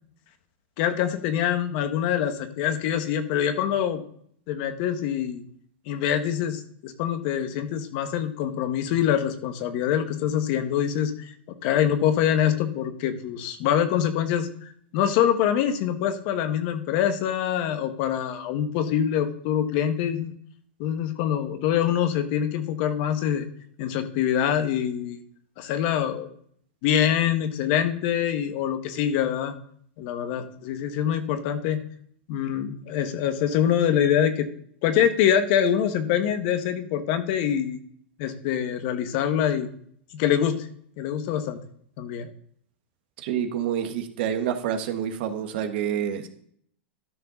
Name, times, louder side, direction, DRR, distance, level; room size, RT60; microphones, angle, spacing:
voice 1, 0.8-4.0 4.5-5.4 5.9-11.3 11.6-20.3 20.8-23.5 23.8-25.2 25.6-26.3 26.8-29.5 30.0-31.8 32.3-34.5 34.8-37.8 38.2-39.7 40.1-40.7 41.0-41.6 42.0-42.3, left 9 dB, 55° left, 8 dB, 1.4 m, -25 dB
voice 2, 43.2-46.3, right 9 dB, 60° right, 6 dB, 1.5 m, -28 dB
12.5 x 4.4 x 5.6 m, 0.62 s
hypercardioid pair, 110°, 6 cm